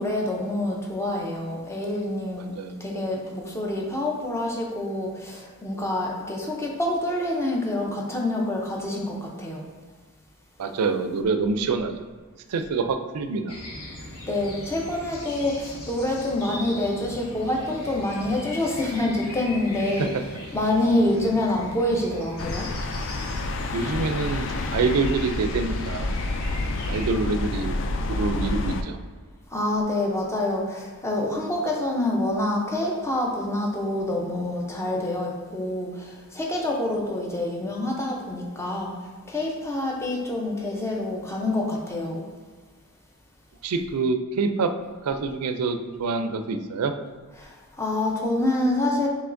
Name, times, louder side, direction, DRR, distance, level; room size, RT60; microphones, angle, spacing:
voice 1, 0.0-2.5 2.8-9.6 14.3-20.1 20.5-22.7 29.5-39.0 39.3-42.2 47.4-49.1, left 1 dB, 10° left, -1 dB, 0.6 m, -26 dB
voice 2, 10.6-11.9 12.5-13.5 20.0-20.1 23.7-26.1 26.9-27.8 28.1-29.0 43.6-44.7 45.0-46.9, right 4 dB, 85° right, 7 dB, 0.4 m, -26 dB
sound 1, 13.5-27.1, left 1 dB, 80° left, 1.1 m, -39 dB
sound 2, 22.4-28.8, left 2 dB, 55° left, 0.3 m, -29 dB
5.6 x 3.1 x 2.6 m, 1.5 s
head